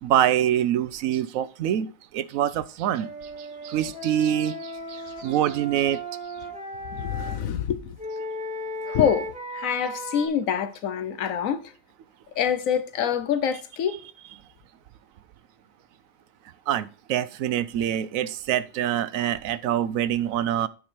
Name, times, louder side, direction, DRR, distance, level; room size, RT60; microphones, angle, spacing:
voice 1, 0.0-3.1 3.4-6.0 16.7-20.7, right 11 dB, 85° right, 1.0 m, -25 dB
Wind instrument woodwind instrument, 3.0-7.4 8.0-10.3, equal, 5° right, 1.9 m, -36 dB
voice 2, 6.9-8.0 8.8-9.3 9.5-11.7 12.4-14.0, left 8 dB, 85° left, 1.2 m, -26 dB
9.4 x 4.8 x 4.4 m
omnidirectional pair, 1.4 m